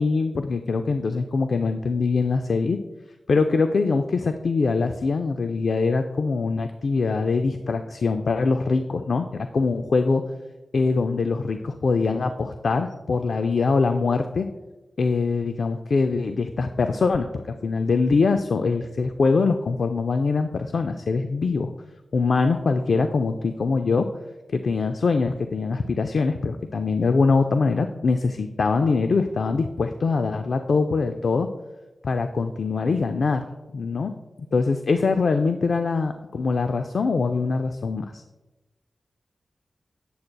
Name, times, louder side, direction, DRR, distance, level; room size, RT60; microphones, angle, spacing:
voice 1, 0.0-2.8 3.3-9.3 9.5-10.2 10.7-14.5 15.0-21.7 22.1-24.1 24.5-31.5 32.0-33.4 33.7-34.1 34.5-38.2, left 4 dB, 70° left, 7 dB, 0.3 m, -23 dB
8.4 x 7.7 x 2.2 m, 1.1 s
wide cardioid pair, 110°, 0 cm